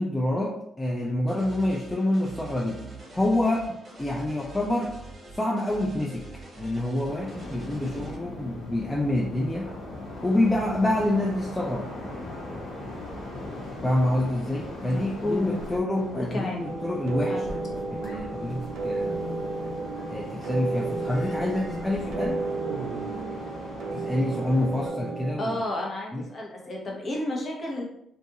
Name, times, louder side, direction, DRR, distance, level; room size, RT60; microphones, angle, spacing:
voice 1, 0.0-2.8 3.1-4.9 5.3-6.2 6.6-9.8 10.2-11.9 13.8-17.6 17.9-19.2 20.1-22.4 23.9-25.6 26.1-26.3, left 1 dB, 10° left, -2 dB, 0.4 m, -27 dB
sound 1, 1.3-8.2, right 2 dB, 40° right, 0.8 m, -44 dB
sound 2, 7.1-24.9, left 1 dB, 80° left, 1.0 m, -40 dB
voice 2, 14.8-16.6 17.3-17.4 25.4-27.8, left 1 dB, 40° left, -1 dB, 0.8 m, -31 dB
sound 3, 16.6-25.4, right 3 dB, 80° right, 0.4 m, -32 dB
2.5 x 2.3 x 2.7 m, 0.75 s
cardioid pair, 90°, 0 cm